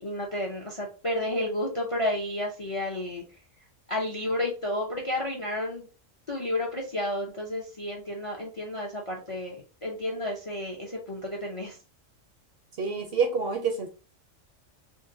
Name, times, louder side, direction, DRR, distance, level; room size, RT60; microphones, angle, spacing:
voice 1, 0.0-3.2 3.9-5.9 6.3-9.6 9.8-11.8, left 1 dB, 35° left, 0 dB, 0.5 m, -31 dB
voice 2, 12.8-13.9, right 5 dB, 60° right, 4 dB, 0.7 m, -27 dB
3.9 x 2.2 x 2.6 m, 0.33 s
omnidirectional pair, 1.4 m